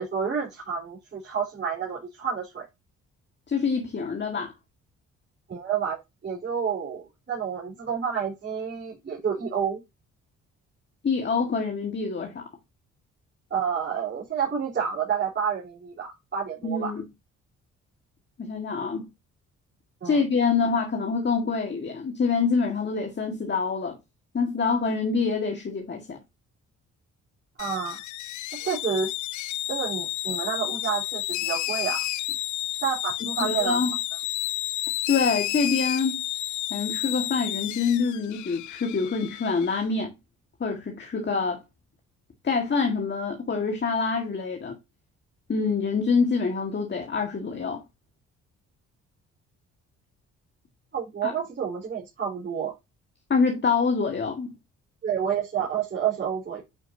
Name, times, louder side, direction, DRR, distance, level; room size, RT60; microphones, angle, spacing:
voice 1, 0.0-2.7 5.5-6.0 6.2-9.8 13.5-16.9 20.0-20.2 27.6-28.0 28.6-29.1 29.7-32.0 32.8-33.8 50.9-52.7 55.0-56.6, right 7 dB, 40° right, 4.1 m, -29 dB
voice 2, 3.5-4.5 11.0-12.5 16.6-17.0 18.4-19.1 20.0-24.0 24.3-26.2 33.4-33.9 35.1-36.2 36.7-40.1 40.6-41.6 42.4-44.8 45.5-47.8 51.2-51.3 53.3-54.5, left 5 dB, 35° left, 1.8 m, -26 dB
sound 1, 27.6-39.8, left 16 dB, 85° left, 0.6 m, -31 dB
9.4 x 5.0 x 2.7 m
cardioid pair, 70°, 29 cm